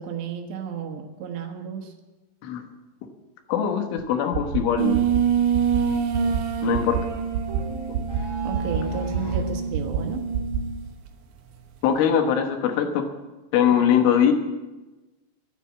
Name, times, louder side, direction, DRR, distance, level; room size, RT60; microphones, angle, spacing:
voice 1, 0.0-1.9 8.4-10.2 13.8-13.9, right 7 dB, 70° right, 4 dB, 3.2 m, -33 dB
voice 2, 3.5-5.0 6.6-7.0 11.8-13.1 13.5-14.3, left 8 dB, 90° left, 5 dB, 3.9 m, -21 dB
sound 1, 4.0-4.1 4.3-4.6 4.9-5.2 5.5-5.8 6.1-6.4 6.7-7.0 7.3-7.6 7.9-8.2 8.5-8.8 9.1-9.4 9.7-10.0 10.3-10.6, right 8 dB, 55° right, 3.0 m, -26 dB
sound 2, 4.8-10.8, right 7 dB, 90° right, 1.8 m, -26 dB
sound 3, 7.5-9.6, equal, 5° right, 2.9 m, -35 dB
13.0 x 10.5 x 7.5 m, 1.1 s
omnidirectional pair, 5.5 m